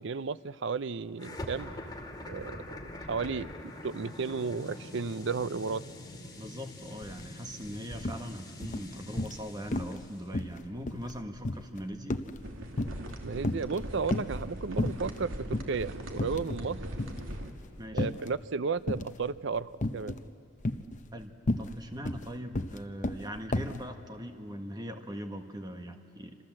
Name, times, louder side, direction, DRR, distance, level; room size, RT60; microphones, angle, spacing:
voice 1, 0.0-1.8 2.3-2.8 3.1-3.5 3.8-5.8 13.2-16.8 17.9-20.1, right 4 dB, 60° right, 16 dB, 0.5 m, -33 dB
sound 1, 1.2-10.3, left 1 dB, 20° left, 2.0 m, -44 dB
voice 2, 6.4-12.2 17.8-18.1 21.1-21.3 21.6-26.4, equal, 20° right, 5 dB, 1.5 m, -41 dB
sound 2, 7.0-7.2 7.5-8.2 8.6-9.4 9.7-10.0 10.3-13.1 13.4-14.4 14.8-15.2 15.5-15.7 16.1-16.7 17.0-18.3 18.9-19.3 19.8-20.3 20.6-23.8, left 1 dB, 40° left, 0.8 m, -33 dB
sound 3, 12.4-17.5, right 1 dB, 80° right, 2.4 m, -40 dB
27.0 x 26.5 x 7.6 m, 2.5 s
head